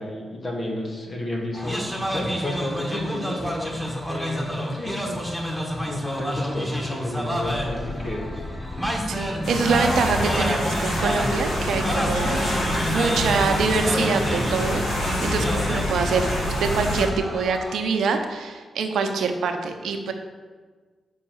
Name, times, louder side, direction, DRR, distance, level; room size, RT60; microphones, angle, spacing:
voice 1, 0.0-3.8 4.1-8.4 9.4-9.7, left 1 dB, 45° left, -1 dB, 2.4 m, -32 dB
sound 1, 1.5-17.8, equal, ahead, 2.1 m, -30 dB
sound 2, 7.4-17.2, left 2 dB, 25° left, 0.7 m, -33 dB
voice 2, 9.1-12.5 12.9-16.3 16.6-20.1, right 4 dB, 80° right, 5 dB, 0.8 m, -25 dB
sound 3, 9.4-17.0, left 1 dB, 80° left, 2.8 m, -27 dB
6.4 x 5.6 x 7.1 m, 1.4 s
supercardioid pair, 45°, 0 cm